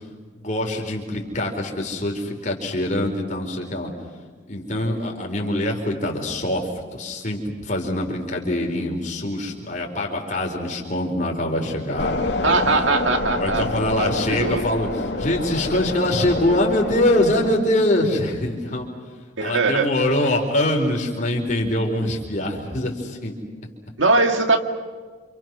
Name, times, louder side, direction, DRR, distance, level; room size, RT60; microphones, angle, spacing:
voice 1, 0.3-3.9 4.5-12.2 12.7-12.8 13.4-18.9 19.4-23.3, left 1 dB, 40° left, 1 dB, 4.4 m, -24 dB
sound 1, 12.0-17.6, left 2 dB, 65° left, 2.6 m, -27 dB
voice 2, 12.4-13.7 14.0-14.6 19.4-19.9 24.0-24.6, right 3 dB, 90° right, 5 dB, 2.1 m, -20 dB
28.5 x 28.0 x 6.2 m, 1.5 s
head